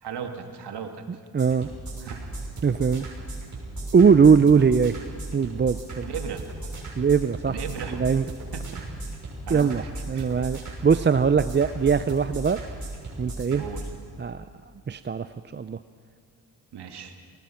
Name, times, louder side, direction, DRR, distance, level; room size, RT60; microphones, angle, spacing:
voice 1, 0.0-0.9 2.0-2.2 6.0-6.4 7.5-8.0 8.5-8.9 9.4-10.3 13.5-13.9 16.7-17.1, right 7 dB, 80° right, 5 dB, 2.2 m, -36 dB
voice 2, 1.3-1.7 2.6-3.1 3.9-4.9 5.3-6.1 7.0-7.5 7.9-8.3 9.5-9.8 10.1-12.6 13.2-13.6 14.2-14.5 14.9-15.3 15.5-15.8, right 6 dB, 25° right, 12 dB, 0.6 m, -20 dB
sound 1, 1.4-13.8, right 2 dB, 45° right, 6.8 m, -36 dB
29.0 x 19.0 x 5.8 m, 2.3 s
cardioid pair, 80°, 40 cm